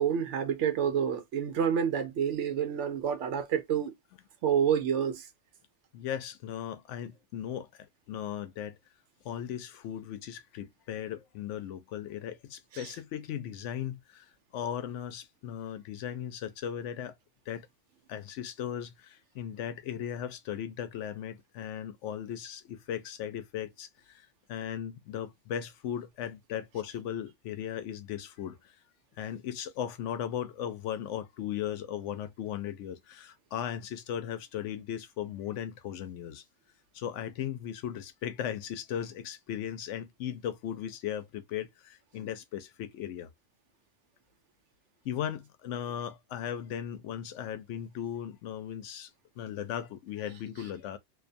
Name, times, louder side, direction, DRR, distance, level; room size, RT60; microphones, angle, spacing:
voice 1, 0.0-3.9 4.4-5.3 12.7-12.9, right 8 dB, 80° right, 1.0 m, -28 dB
voice 2, 5.9-8.8 9.2-14.3 14.5-17.1 17.5-17.7 18.1-28.8 29.2-36.4 36.9-43.3 45.0-49.1 49.4-51.0, left 10 dB, 85° left, 0.9 m, -37 dB
2.5 x 2.2 x 2.5 m
omnidirectional pair, 1.2 m